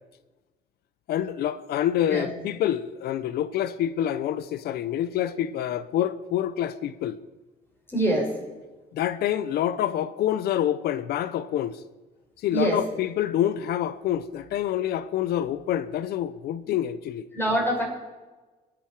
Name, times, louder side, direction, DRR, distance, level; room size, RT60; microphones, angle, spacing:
voice 1, 1.1-7.2 8.9-11.8 12.4-17.2, left 11 dB, 70° left, 0.8 m, -27 dB
voice 2, 7.9-8.4 12.5-12.8 17.3-17.8, right 1 dB, 15° left, 6.8 m, -24 dB
27.0 x 9.4 x 5.0 m
cardioid pair, 110°, 17 cm